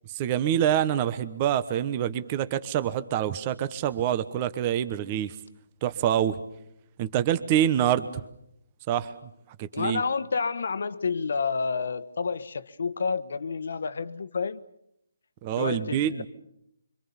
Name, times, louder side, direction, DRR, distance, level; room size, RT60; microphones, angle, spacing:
voice 1, 0.1-5.3 5.8-6.4 7.0-8.1 8.9-9.1 9.6-10.0 15.4-16.3, right 10 dB, 25° right, 1.1 m, -26 dB
voice 2, 9.7-14.6 15.6-16.2, left 5 dB, 65° left, 1.3 m, -29 dB
26.5 x 24.5 x 7.2 m
hypercardioid pair, 155°, 0 cm